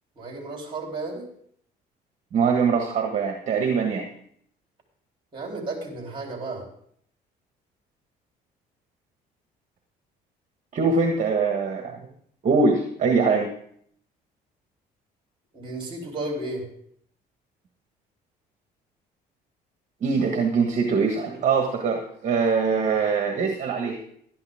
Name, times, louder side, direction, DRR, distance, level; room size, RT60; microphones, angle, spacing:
voice 1, 0.2-1.3 5.3-6.6 15.5-16.6, right 2 dB, 30° right, 1 dB, 3.9 m, -33 dB
voice 2, 2.3-4.0 10.7-12.0 12.4-13.5 20.0-24.0, right 4 dB, 45° right, 3 dB, 1.6 m, -23 dB
12.0 x 11.5 x 3.7 m, 0.66 s
cardioid pair, 110°, 17 cm